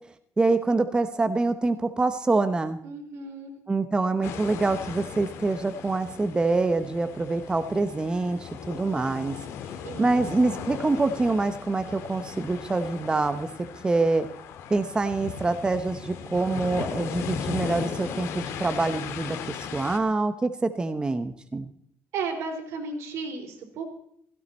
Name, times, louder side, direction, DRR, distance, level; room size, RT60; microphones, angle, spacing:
voice 1, 0.4-2.8 3.7-9.3 10.0-13.5 13.8-14.3 14.7-21.7, right 3 dB, 20° right, 9 dB, 0.9 m, -25 dB
voice 2, 2.8-3.5 9.8-10.2 22.1-23.8, right 4 dB, 80° right, 2 dB, 4.4 m, -34 dB
sound 1, 4.2-20.0, left 7 dB, 90° left, 1.8 m, -37 dB
17.0 x 16.0 x 4.3 m, 0.68 s
cardioid pair, 125°, 5 cm